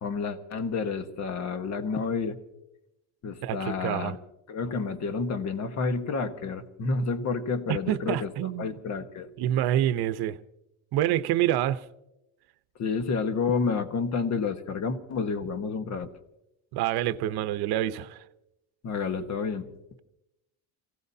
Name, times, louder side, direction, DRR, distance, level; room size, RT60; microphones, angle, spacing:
voice 1, 0.0-2.4 3.2-4.2 4.5-9.3 12.8-16.1 18.8-19.7, left 4 dB, 35° left, 1.4 m, -30 dB
voice 2, 3.4-4.2 7.7-8.7 9.4-10.4 10.9-11.8 16.7-18.2, right 12 dB, 55° right, 0.9 m, -27 dB
29.0 x 16.5 x 2.8 m
cardioid pair, 140°, 44 cm